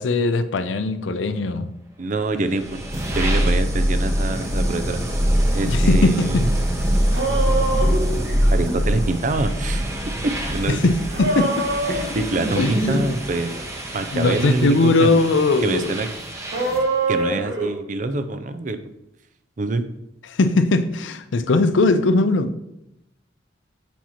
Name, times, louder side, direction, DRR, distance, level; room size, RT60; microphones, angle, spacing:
voice 1, 0.0-1.7 5.6-6.5 10.7-11.7 12.6-13.1 14.1-16.0 20.3-22.5, left 3 dB, 85° left, 11 dB, 0.5 m, -20 dB
voice 2, 2.0-5.0 5.5-6.4 8.5-9.9 10.2-10.8 11.9-13.6 13.9-15.2 15.6-16.1 17.1-18.8 19.6-19.8, right 2 dB, 45° right, 10 dB, 0.5 m, -25 dB
sound 1, 2.3-16.9, equal, 15° right, 0.8 m, -24 dB
sound 2, 6.7-6.8 6.9-8.8 11.1-13.0 13.4-13.6 16.5-17.7, right 2 dB, 70° right, 1.7 m, -24 dB
7.2 x 2.9 x 5.6 m, 0.84 s
head